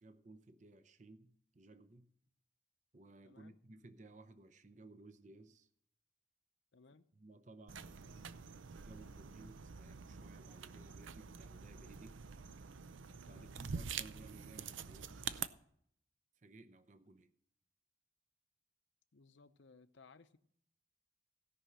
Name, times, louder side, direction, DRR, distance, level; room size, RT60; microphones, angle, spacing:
voice 1, 0.0-2.1 2.9-5.7 7.1-8.3 8.8-12.2 13.3-15.6 16.4-17.3, right 2 dB, 40° right, 0.7 m, -58 dB
voice 2, 3.2-3.6 6.7-7.1 13.2-13.6 19.1-20.4, left 4 dB, 75° left, 0.7 m, -62 dB
sound 1, 7.7-15.5, right 6 dB, 85° right, 0.6 m, -47 dB
16.5 x 5.7 x 6.3 m
head